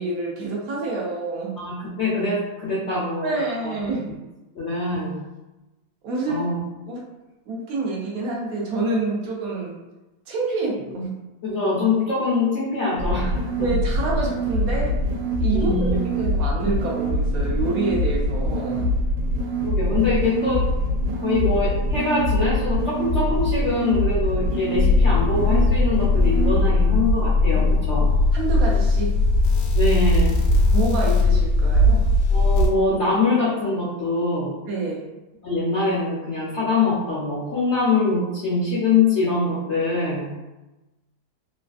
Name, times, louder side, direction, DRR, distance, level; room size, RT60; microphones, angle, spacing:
voice 1, 0.0-1.6 3.2-4.1 6.0-6.5 6.9-7.1 7.5-9.8 10.3-11.1 13.6-15.0 15.4-18.9 28.3-29.2 30.7-32.1 34.7-35.1, right 3 dB, 65° right, -2 dB, 0.9 m, -27 dB
voice 2, 1.6-3.4 3.6-3.7 4.5-5.2 6.3-6.6 10.9-11.0 11.4-13.7 15.5-16.0 19.6-20.6 21.2-28.1 29.7-30.3 32.3-34.6 35.4-40.3, left 3 dB, 60° left, -8 dB, 0.7 m, -23 dB
sound 1, 13.0-26.7, equal, 85° right, 1.3 m, -24 dB
sound 2, 24.7-32.7, left 2 dB, 80° left, 1.2 m, -19 dB
3.2 x 2.4 x 2.4 m, 1.1 s
omnidirectional pair, 2.0 m